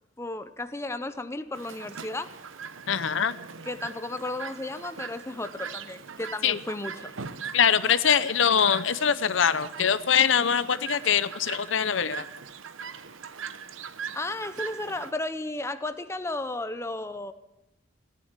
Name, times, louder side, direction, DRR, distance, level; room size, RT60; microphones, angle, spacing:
voice 1, 0.2-2.3 3.6-7.1 14.1-17.3, left 2 dB, 15° left, 11 dB, 0.6 m, -34 dB
Chirp tweet, 1.5-15.1, right 6 dB, 75° right, 0.9 m, -41 dB
voice 2, 2.9-3.4 6.4-6.6 7.5-12.2, left 7 dB, 70° left, 15 dB, 0.7 m, -23 dB
16.0 x 10.5 x 8.1 m, 0.95 s
head